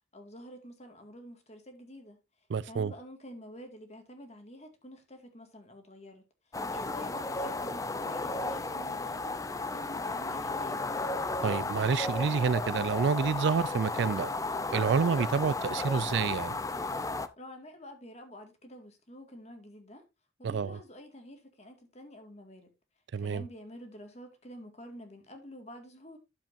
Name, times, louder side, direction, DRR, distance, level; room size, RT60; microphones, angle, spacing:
voice 1, 0.1-2.2 2.6-10.8 17.4-20.1 20.4-22.7 23.2-26.2, equal, 35° left, 2.0 m, -48 dB
voice 2, 2.5-2.9 11.4-14.3 14.7-16.5 20.4-20.8 23.1-23.4, right 5 dB, 75° right, 0.4 m, -28 dB
sound 1, 6.5-17.3, left 3 dB, 20° left, 0.5 m, -34 dB
11.5 x 7.4 x 2.6 m
head